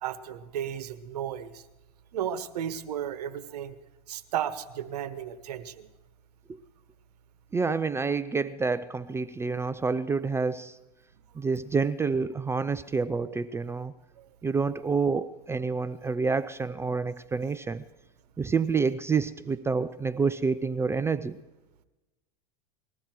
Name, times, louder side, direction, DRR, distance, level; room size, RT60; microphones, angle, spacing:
voice 1, 0.0-1.6 2.1-3.7 4.1-5.9 14.2-14.3, right 10 dB, 85° right, 12 dB, 1.2 m, -34 dB
voice 2, 7.5-10.8 11.4-13.9 14.4-17.8 18.4-21.4, right 4 dB, 15° right, 14 dB, 0.4 m, -28 dB
20.5 x 14.0 x 4.5 m, 1.1 s
supercardioid pair, 115°, 20 cm